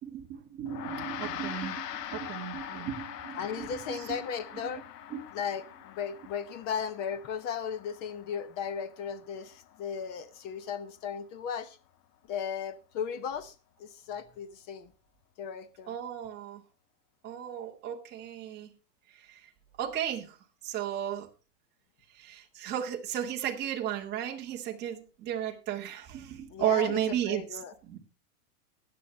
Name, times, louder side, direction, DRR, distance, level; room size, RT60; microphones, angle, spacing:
voice 1, 0.0-4.2 5.1-5.3 15.9-16.6 17.2-18.7 19.1-19.5 19.8-20.4 20.6-21.3 22.1-28.0, right 11 dB, 20° right, 1.5 m, -34 dB
Gong, 0.7-10.2, left 10 dB, 80° left, 1.6 m, -43 dB
voice 2, 3.4-4.8 5.3-11.8 12.3-13.5 13.8-14.9 15.4-15.9 26.5-27.7, left 7 dB, 20° left, 0.8 m, -36 dB
17.0 x 10.5 x 3.2 m
supercardioid pair, 165°, 48 cm